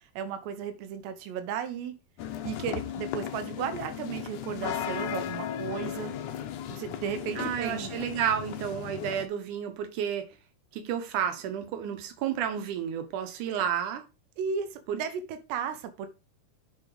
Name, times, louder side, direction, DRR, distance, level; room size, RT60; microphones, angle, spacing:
voice 1, 0.2-1.9 2.4-6.1 6.7-7.9 14.4-14.7 14.9-16.1, right 7 dB, 85° right, 3.2 m, -34 dB
sound 1, 2.2-9.3, left 10 dB, 85° left, 1.7 m, -36 dB
voice 2, 7.4-10.3 10.7-14.0 14.9-15.0, right 9 dB, 65° right, 2.3 m, -31 dB
7.5 x 5.0 x 5.0 m
omnidirectional pair, 4.8 m